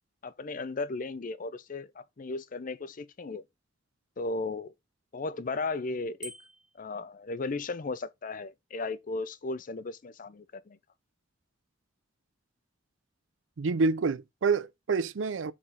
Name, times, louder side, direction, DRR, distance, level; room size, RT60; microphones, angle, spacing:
voice 1, 0.2-3.4 4.2-4.7 5.1-6.3 6.7-10.8, left 3 dB, 45° left, 0.5 m, -35 dB
Bicycle bell, 6.2-6.8, equal, 5° right, 0.5 m, -44 dB
voice 2, 13.6-15.5, right 4 dB, 80° right, 0.5 m, -27 dB
5.0 x 4.2 x 5.6 m
head